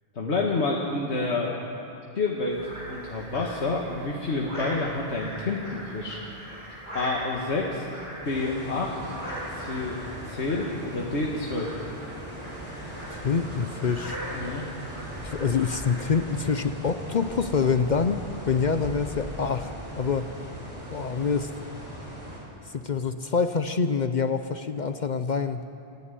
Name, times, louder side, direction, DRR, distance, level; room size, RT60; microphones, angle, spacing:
voice 1, 0.2-1.6 2.2-2.6 2.9-6.2 6.9-7.9 8.2-9.1 9.5-10.0 10.3-11.7 14.3-14.7, left 3 dB, 85° left, -2 dB, 1.9 m, -28 dB
sound 1, 2.5-16.0, equal, 45° right, 6.7 m, -40 dB
sound 2, 8.2-22.4, right 1 dB, 30° right, 4.7 m, -39 dB
voice 2, 13.1-14.2 15.2-19.7 19.9-20.3 20.9-21.5 22.7-25.7, left 5 dB, 50° left, 10 dB, 0.7 m, -26 dB
28.5 x 10.5 x 9.2 m, 2.9 s
omnidirectional pair, 1.1 m